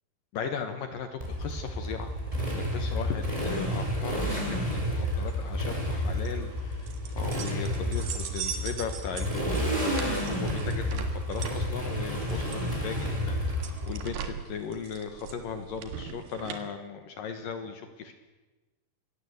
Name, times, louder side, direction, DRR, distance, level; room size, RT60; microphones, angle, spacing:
voice 1, 0.3-2.1 2.5-18.1, left 6 dB, 65° left, 8 dB, 2.3 m, -37 dB
Motorcycle, 1.2-14.0, equal, 5° right, 4.3 m, -30 dB
sound 1, 5.3-16.6, right 8 dB, 60° right, 2.8 m, -41 dB
23.5 x 17.0 x 8.1 m, 1.2 s
omnidirectional pair, 5.5 m